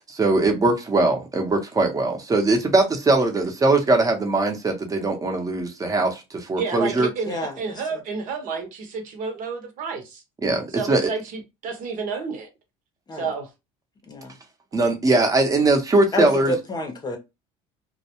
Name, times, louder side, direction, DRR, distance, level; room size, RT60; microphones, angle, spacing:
voice 1, 0.1-7.1 10.4-11.1 14.7-16.5, right 2 dB, 25° right, 0.8 m, -21 dB
voice 2, 6.6-10.2 10.7-12.5 13.1-13.5, right 5 dB, 60° right, 0.9 m, -30 dB
voice 3, 7.3-7.8 13.1-13.3 14.1-14.3 16.1-17.2, left 1 dB, 25° left, 0.7 m, -29 dB
2.2 x 2.1 x 2.9 m
supercardioid pair, 100°, 15 cm